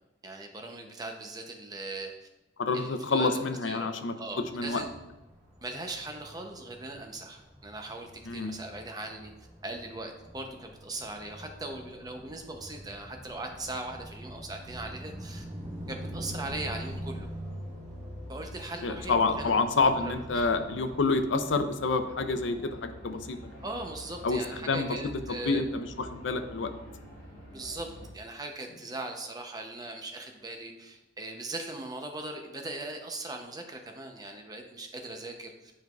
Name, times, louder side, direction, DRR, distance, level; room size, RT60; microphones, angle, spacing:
voice 1, 0.2-2.1 2.7-3.3 3.6-4.9 5.6-9.3 9.6-15.4 15.9-17.3 18.3-19.5 19.8-20.5 23.6-25.6 27.5-27.9 28.1-35.7, right 2 dB, 20° right, 3 dB, 0.6 m, -39 dB
voice 2, 2.6-4.1 4.5-4.8 8.3-8.5 18.8-23.5 24.2-24.4 24.7-26.7, left 3 dB, 65° left, 8 dB, 0.5 m, -28 dB
sound 1, 4.3-21.0, equal, 35° right, 1.7 m, -44 dB
sound 2, 19.0-28.1, equal, 50° left, 2.2 m, -47 dB
8.9 x 4.6 x 2.3 m, 0.98 s
head